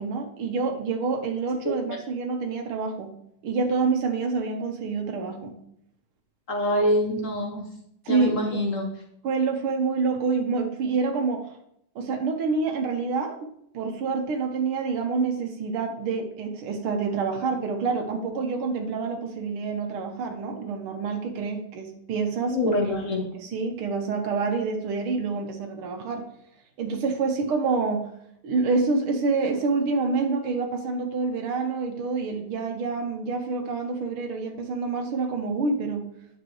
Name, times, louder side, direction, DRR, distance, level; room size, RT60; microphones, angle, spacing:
voice 1, 0.0-3.1 3.4-5.6 8.1-8.6 9.2-11.6 12.0-13.5 13.7-22.8 23.2-26.3 26.8-28.1 28.4-36.1, right 4 dB, 90° right, 3 dB, 1.9 m, -27 dB
voice 2, 6.5-7.7 8.1-8.9 22.5-23.2, left 1 dB, 50° left, 2 dB, 1.0 m, -25 dB
9.1 x 6.7 x 3.1 m, 0.73 s
omnidirectional pair, 2.3 m